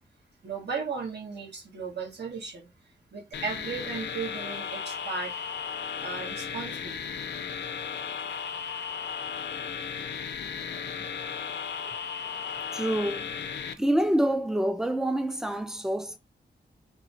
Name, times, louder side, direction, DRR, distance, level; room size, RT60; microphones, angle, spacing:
voice 1, 0.4-2.7 3.1-5.4 6.0-7.0, right 5 dB, 70° right, 1.4 m, -36 dB
sound 1, 3.3-13.7, left 7 dB, 75° left, 0.5 m, -35 dB
voice 2, 10.7-11.1 11.8-11.9 12.7-13.3 13.8-16.2, right 1 dB, 5° right, 0.3 m, -27 dB
3.7 x 3.0 x 2.6 m
wide cardioid pair, 160°, 18 cm